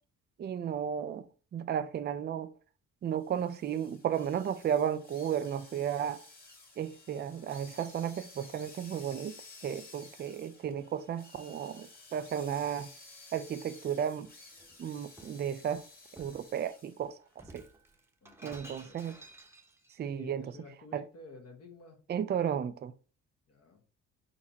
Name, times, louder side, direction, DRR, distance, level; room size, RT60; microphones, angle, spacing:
voice 1, 0.4-1.3 1.5-2.5 3.0-6.2 6.8-9.4 9.6-12.9 13.3-14.3 14.8-15.8 16.2-17.2 17.5-17.6 18.4-19.2 20.0-20.5 20.9-21.0 22.1-22.9, right 9 dB, 35° right, 0.4 m, -33 dB
sound 1, 3.2-17.1, left 3 dB, 30° left, 1.7 m, -54 dB
Shatter, 14.6-15.4 16.2-16.5 17.3-20.0, right 2 dB, 10° right, 0.9 m, -53 dB
voice 2, 18.2-19.0 20.1-22.0 23.5-23.8, left 3 dB, 55° left, 1.4 m, -52 dB
4.2 x 4.1 x 2.8 m
cardioid pair, 90°, 30 cm